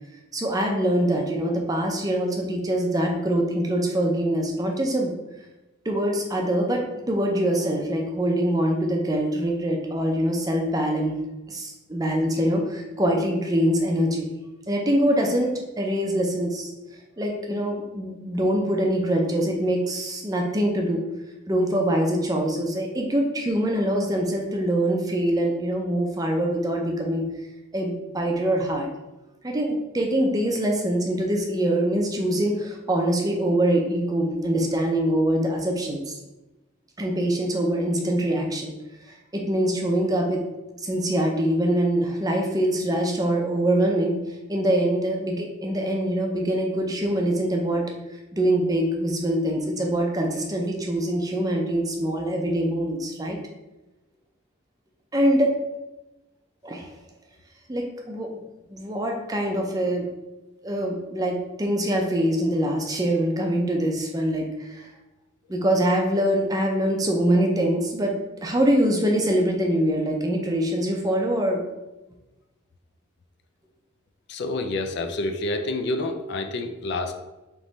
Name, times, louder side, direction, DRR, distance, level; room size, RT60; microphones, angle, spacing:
voice 1, 0.3-5.1 5.8-11.2 11.5-14.3 14.7-16.7 17.2-21.0 21.5-27.3 27.7-28.9 29.4-36.2 37.0-38.7 39.1-40.4 40.8-44.2 44.5-47.8 48.3-53.4 55.1-55.5 56.6-56.9 57.7-58.3 58.7-60.0 60.6-64.9 65.5-68.1 68.4-71.6, right 1 dB, 20° right, 1 dB, 0.5 m, -24 dB
voice 2, 74.3-77.1, left 2 dB, 55° left, 6 dB, 0.4 m, -28 dB
3.5 x 3.0 x 3.9 m, 1.0 s
head